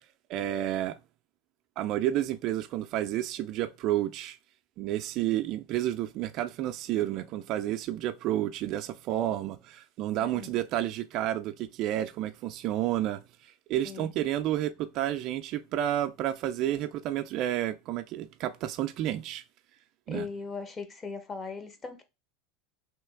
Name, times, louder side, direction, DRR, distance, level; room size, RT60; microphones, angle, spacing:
voice 1, 0.3-1.0 1.8-4.4 4.8-13.2 13.7-19.4 20.1-20.3, right 12 dB, 50° right, 0.4 m, -30 dB
voice 2, 10.2-10.6 13.8-14.1 20.1-22.0, left 5 dB, 25° left, 0.8 m, -39 dB
3.2 x 2.9 x 3.4 m
supercardioid pair, 110°, 0 cm